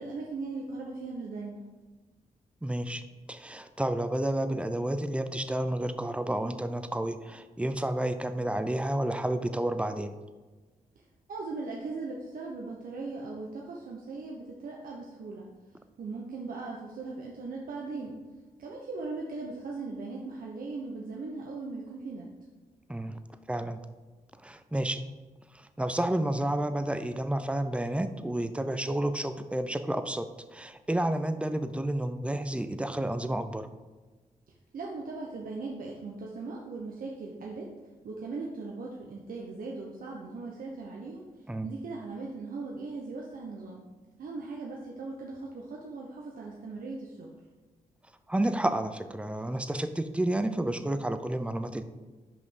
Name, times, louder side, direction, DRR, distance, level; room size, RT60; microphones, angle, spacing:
voice 1, 0.0-1.6 11.3-15.5 16.0-18.2 18.6-22.3 34.7-37.7 38.0-41.3 41.6-43.9 44.2-47.3, right 3 dB, 70° right, -2 dB, 1.0 m, -39 dB
voice 2, 2.6-3.0 3.3-10.1 22.9-23.2 23.5-23.8 24.4-25.0 25.5-30.3 30.5-33.7 41.5-41.7 48.3-51.8, right 1 dB, 10° right, 9 dB, 0.6 m, -30 dB
6.0 x 5.2 x 6.2 m, 1.3 s
cardioid pair, 65°, 15 cm